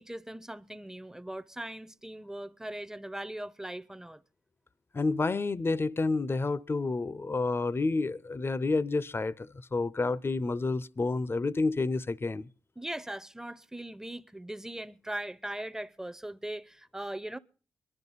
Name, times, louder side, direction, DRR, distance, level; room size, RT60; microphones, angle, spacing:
voice 1, 0.0-4.2 12.8-17.4, right 1 dB, 5° right, 0.6 m, -40 dB
voice 2, 4.9-12.5, left 3 dB, 35° left, 0.6 m, -29 dB
22.5 x 11.0 x 4.1 m
supercardioid pair, 50°, 7 cm